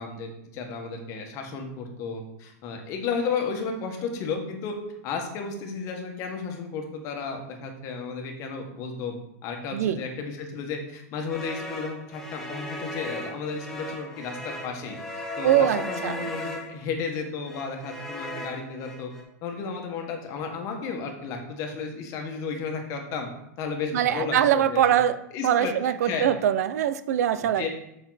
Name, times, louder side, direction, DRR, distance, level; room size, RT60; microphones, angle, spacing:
voice 1, 0.0-4.8 5.0-9.2 9.4-19.1 19.4-23.3 23.6-25.0 25.3-26.3 27.4-27.7, left 5 dB, 35° left, 3 dB, 1.5 m, -33 dB
sound 1, 11.3-16.9 17.4-19.2, equal, 5° left, 1.2 m, -37 dB
voice 2, 15.4-16.2 23.9-25.2 25.4-27.7, right 10 dB, 70° right, 13 dB, 0.6 m, -23 dB
7.2 x 5.7 x 4.1 m, 0.82 s
supercardioid pair, 145°, 9 cm